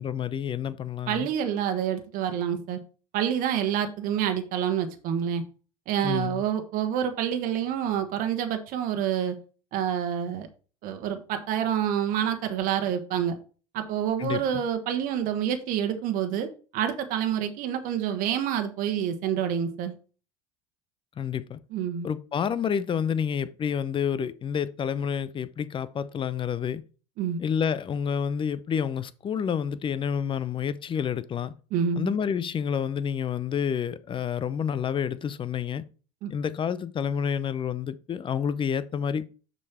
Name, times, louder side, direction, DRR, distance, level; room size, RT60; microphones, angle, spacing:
voice 1, 0.0-1.3 6.0-6.4 14.2-14.6 21.2-21.6 22.0-26.8 27.4-31.5 32.0-35.8 36.3-39.3, left 7 dB, 30° left, 0.6 m, -29 dB
voice 2, 1.1-2.8 3.1-5.4 5.9-9.4 9.7-10.5 10.8-13.4 13.7-19.9 21.7-22.1 27.2-27.4 31.7-32.1 36.2-36.3, right 9 dB, 55° right, 1.2 m, -27 dB
6.5 x 5.4 x 4.3 m
hypercardioid pair, 85°, 17 cm